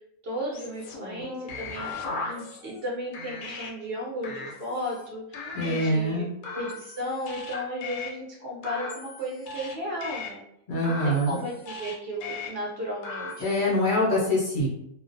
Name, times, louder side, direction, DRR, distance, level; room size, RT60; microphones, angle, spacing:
voice 1, 0.2-6.3 6.5-10.4 10.8-13.5, equal, 55° right, -4 dB, 0.7 m, -35 dB
sound 1, 0.5-2.9 3.1-3.7 4.2-5.1 5.3-5.9 6.4-8.1 8.6-9.7 10.0-10.3 10.8-11.9 12.2-12.5 13.0-13.7, left 3 dB, 75° left, 1.0 m, -37 dB
voice 2, 5.5-6.3 10.7-11.4 13.4-14.7, left 1 dB, 50° left, -6 dB, 0.6 m, -24 dB
2.4 x 2.0 x 2.5 m, 0.80 s
omnidirectional pair, 1.5 m